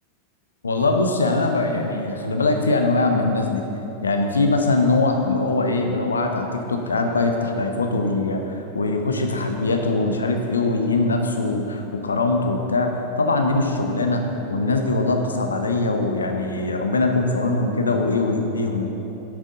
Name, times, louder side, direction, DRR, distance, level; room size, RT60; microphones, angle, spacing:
voice 1, 0.6-3.6 4.0-14.2 14.5-18.9, left 3 dB, 75° left, 4 dB, 0.8 m, -22 dB
11.0 x 7.4 x 3.8 m, 2.9 s
figure-of-eight pair, 90°, 0 cm